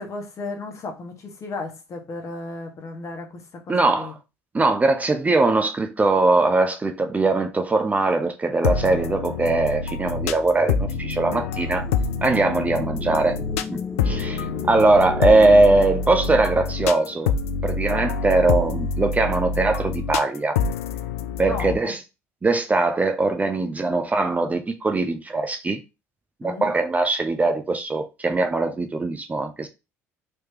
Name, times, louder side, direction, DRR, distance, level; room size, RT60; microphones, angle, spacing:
voice 1, 0.0-4.1 21.5-21.9 26.4-26.7, left 3 dB, 45° left, 1.2 m, -34 dB
voice 2, 3.7-4.1 4.5-11.9 12.2-13.4 13.7-13.8 14.1-17.3 17.6-20.6 21.4-22.0 22.4-25.8 26.4-29.7, right 2 dB, 20° right, 0.6 m, -21 dB
sound 1, 8.6-21.8, left 5 dB, 80° left, 0.4 m, -26 dB
sound 2, 9.9-18.3, left 4 dB, 20° left, 0.6 m, -38 dB
3.4 x 3.1 x 2.9 m
hypercardioid pair, 65°, 8 cm